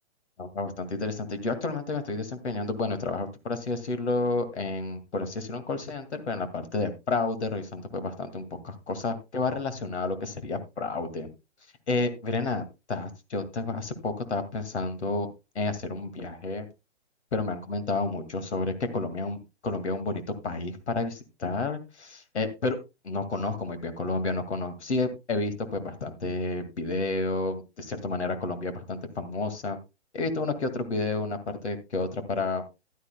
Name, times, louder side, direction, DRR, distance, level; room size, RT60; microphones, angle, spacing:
voice 1, 0.4-11.3 11.9-15.3 15.5-16.7 17.3-22.8 23.0-29.8 30.1-32.6, left 3 dB, 70° left, 10 dB, 2.2 m, -30 dB
14.5 x 11.5 x 2.2 m, 0.25 s
figure-of-eight pair, 130°, 35 cm